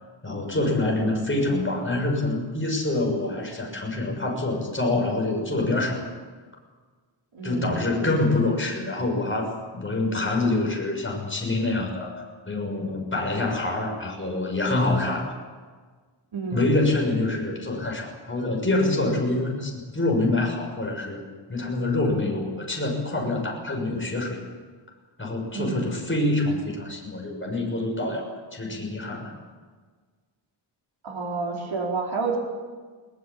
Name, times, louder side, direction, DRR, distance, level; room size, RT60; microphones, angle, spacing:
voice 1, 0.2-6.0 7.4-15.4 16.5-21.2 21.5-24.4 25.2-29.3, left 2 dB, 25° left, 0 dB, 6.8 m, -26 dB
voice 2, 7.3-7.9 16.3-16.6 25.5-26.0 31.0-32.4, right 4 dB, 75° right, -2 dB, 4.7 m, -30 dB
20.5 x 20.0 x 8.7 m, 1.5 s
wide cardioid pair, 115°, 47 cm